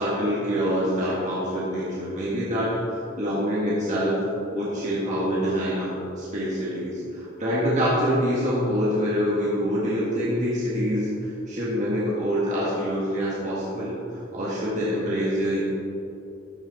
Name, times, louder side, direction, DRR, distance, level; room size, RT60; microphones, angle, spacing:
voice 1, 0.0-4.2 4.5-5.9 6.2-15.6, equal, 40° right, -7 dB, 1.6 m, -25 dB
13.5 x 6.1 x 4.1 m, 2.8 s
head